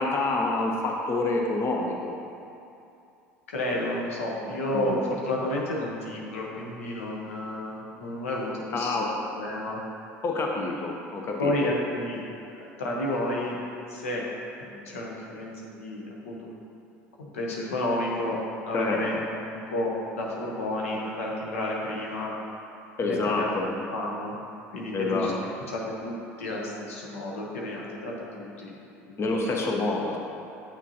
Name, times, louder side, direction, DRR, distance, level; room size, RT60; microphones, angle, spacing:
voice 1, 0.0-2.1 4.7-4.9 8.7-9.1 10.2-11.7 18.7-19.2 23.0-23.7 24.9-25.3 29.2-30.2, left 3 dB, 35° left, 0 dB, 0.9 m, -27 dB
voice 2, 3.5-9.8 11.4-12.2 12.6-13.6 13.9-14.2 14.6-16.5 17.2-22.4 23.0-24.3 24.7-25.3 25.7-28.8 29.1-29.5, left 1 dB, 85° left, -2 dB, 1.0 m, -31 dB
8.3 x 6.1 x 2.8 m, 2.7 s
hypercardioid pair, 70°, 7 cm